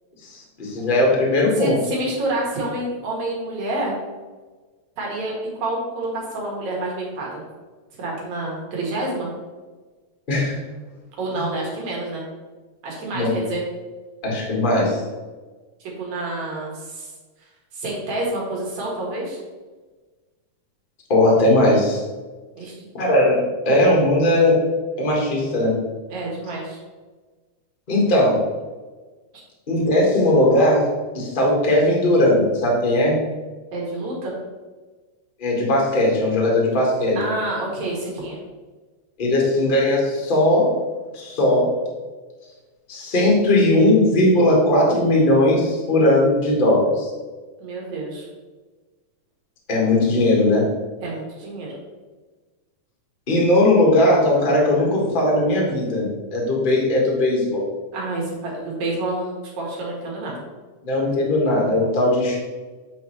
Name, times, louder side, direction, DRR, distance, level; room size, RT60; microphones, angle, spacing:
voice 1, 0.2-1.8 10.3-10.5 11.4-11.5 13.1-13.3 14.2-15.0 21.1-22.0 22.9-24.6 25.0-25.8 27.9-28.4 29.7-30.9 31.1-33.2 35.4-37.2 39.2-40.7 41.1-41.7 42.9-47.1 49.7-50.7 53.3-57.6 60.8-62.3, left 1 dB, 30° left, -3 dB, 0.9 m, -18 dB
voice 2, 1.6-4.0 5.0-7.4 8.0-9.3 11.2-12.2 12.8-13.6 15.8-17.1 17.7-19.4 22.6-22.8 26.1-26.8 33.7-34.3 37.2-38.4 47.6-48.3 51.0-51.7 57.9-60.4, right 2 dB, 70° right, -3 dB, 2.9 m, -28 dB
8.3 x 4.4 x 3.2 m, 1.3 s
omnidirectional pair, 3.4 m